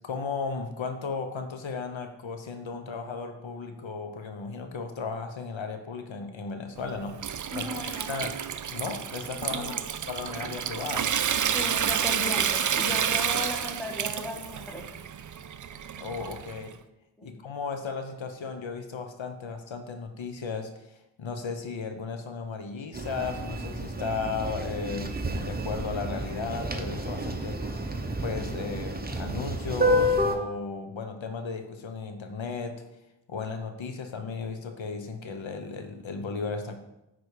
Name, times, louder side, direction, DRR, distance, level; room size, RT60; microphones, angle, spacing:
voice 1, 0.0-8.4 8.7-9.7 10.1-11.1 16.0-16.7 17.2-27.6 28.2-32.7 33.3-36.8, left 4 dB, 80° left, 6 dB, 0.9 m, -35 dB
Water tap faucet / Sink (filling or washing) / Trickle dribble, 6.8-16.7, right 8 dB, 45° right, 0.4 m, -30 dB
voice 2, 7.5-8.1 9.5-9.8 11.5-14.8 17.2-17.3, equal, ahead, 0 dB, 1.4 m, -36 dB
sound 1, 22.9-30.4, equal, 20° right, 0.8 m, -30 dB
9.5 x 4.1 x 4.8 m, 0.89 s
wide cardioid pair, 85°, 45 cm